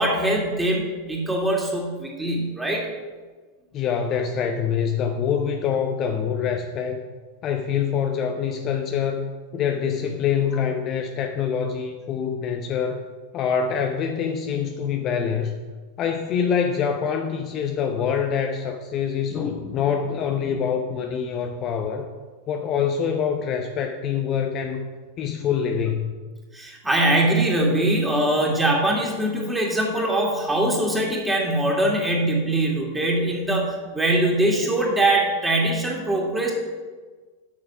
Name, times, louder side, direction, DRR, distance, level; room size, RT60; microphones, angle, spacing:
voice 1, 0.0-2.9 26.5-36.5, right 1 dB, 10° right, -2 dB, 2.5 m, -22 dB
voice 2, 3.7-7.0 7.4-13.0 13.3-15.6 16.0-22.1 22.5-24.9 25.2-26.1, left 7 dB, 35° left, 4 dB, 0.7 m, -25 dB
8.6 x 6.5 x 6.0 m, 1.4 s
figure-of-eight pair, 90°, 0 cm